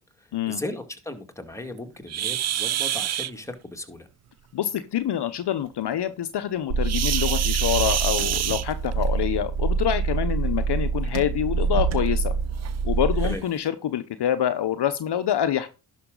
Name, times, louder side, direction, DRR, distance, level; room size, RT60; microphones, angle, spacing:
voice 1, 0.2-4.1 13.2-13.4, left 1 dB, 5° left, 5 dB, 2.1 m, -36 dB
sound 1, 2.1-3.3 6.8-9.1 10.3-10.5 11.1-11.2 11.7-11.8 12.6-12.7 13.2-13.4, right 11 dB, 35° right, 0.4 m, -27 dB
voice 2, 4.5-12.3 12.8-15.7, left 10 dB, 55° left, 11 dB, 0.9 m, -26 dB
Car / Engine, 6.7-13.3, right 5 dB, 70° right, 1.7 m, -25 dB
11.0 x 6.2 x 3.9 m, 0.29 s
supercardioid pair, 60°, 48 cm